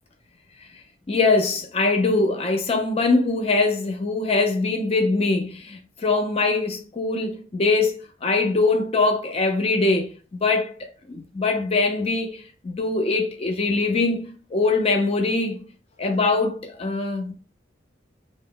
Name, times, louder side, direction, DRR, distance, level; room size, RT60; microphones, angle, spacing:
voice 1, 1.1-10.1 10.4-10.7 11.1-15.6 16.0-17.3, left 3 dB, 30° left, 0.4 m, -22 dB
2.0 x 2.0 x 3.6 m
head